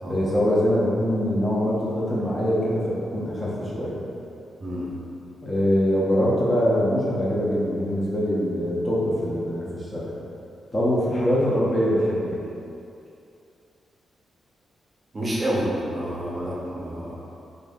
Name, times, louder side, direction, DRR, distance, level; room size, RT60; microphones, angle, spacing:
voice 1, 0.0-4.0 5.4-10.1 10.7-12.4, equal, 20° left, -7 dB, 0.6 m, -23 dB
voice 2, 4.6-4.9 15.1-17.1, equal, 30° right, -6 dB, 0.6 m, -28 dB
3.2 x 2.6 x 3.5 m, 2.7 s
wide cardioid pair, 150°, 0 cm